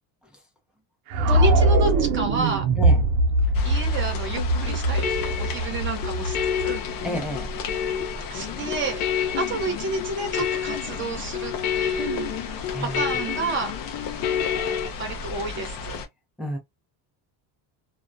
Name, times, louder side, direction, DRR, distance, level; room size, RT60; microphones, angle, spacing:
sound 1, 1.1-7.2, right 2 dB, 90° right, 0.7 m, -22 dB
voice 1, 1.2-2.6 3.6-6.8 8.3-13.8 15.0-16.0, right 3 dB, 25° right, 0.8 m, -31 dB
sound 2, 3.5-16.1, left 5 dB, 50° left, 0.5 m, -35 dB
sound 3, 4.4-14.9, left 9 dB, 80° left, 0.7 m, -29 dB
voice 2, 7.0-7.5 12.7-13.1 16.4-16.6, equal, ahead, 0.4 m, -31 dB
2.3 x 2.1 x 2.5 m
cardioid pair, 160°, 47 cm